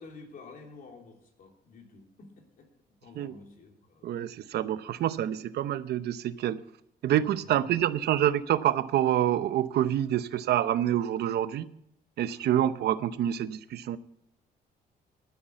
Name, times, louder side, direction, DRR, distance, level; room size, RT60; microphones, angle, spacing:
voice 1, 0.0-2.7 3.0-4.1 7.4-7.6, left 4 dB, 55° left, 3.1 m, -50 dB
voice 2, 4.0-6.6 7.0-11.7 12.2-14.0, right 11 dB, 75° right, 0.8 m, -27 dB
12.0 x 9.9 x 8.2 m
cardioid pair, 150°, 17 cm